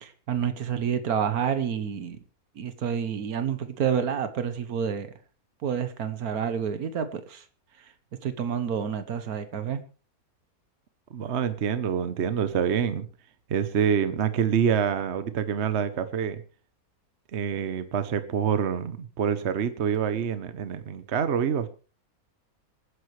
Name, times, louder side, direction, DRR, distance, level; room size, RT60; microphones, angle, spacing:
voice 1, 0.0-2.2 2.6-5.1 5.6-7.4 7.8-7.9 8.2-9.8, right 7 dB, 90° right, 10 dB, 1.6 m, -29 dB
voice 2, 11.1-13.1 13.5-16.4 17.3-21.7, right 7 dB, 55° right, 11 dB, 1.1 m, -26 dB
27.0 x 9.7 x 3.2 m, 0.35 s
omnidirectional pair, 1.5 m